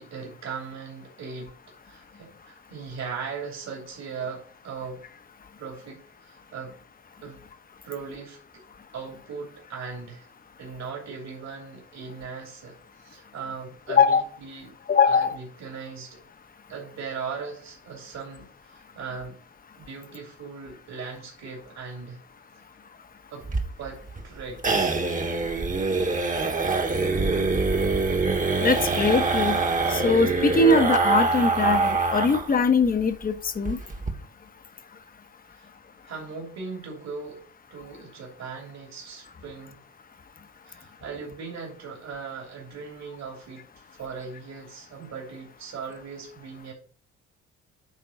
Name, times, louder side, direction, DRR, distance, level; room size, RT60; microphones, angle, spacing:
voice 1, 0.0-1.6 1.8-5.0 5.6-6.7 7.2-7.4 7.8-8.6 8.9-10.3 10.6-14.7 15.1-16.2 16.7-19.4 19.8-22.2 23.3-23.5 23.8-25.0 35.5-35.7 36.1-37.4 37.7-39.8 40.6-46.7, right 5 dB, 60° right, 3.1 m, -39 dB
voice 2, 13.9-14.2 14.9-15.4 28.6-29.6 29.9-33.8, left 4 dB, 30° left, 0.9 m, -21 dB
sound 1, 23.4-32.5 32.8-32.9 33.2-33.3 33.6-34.1, right 3 dB, 25° right, 1.4 m, -24 dB
9.2 x 3.7 x 5.2 m
cardioid pair, 90°, 30 cm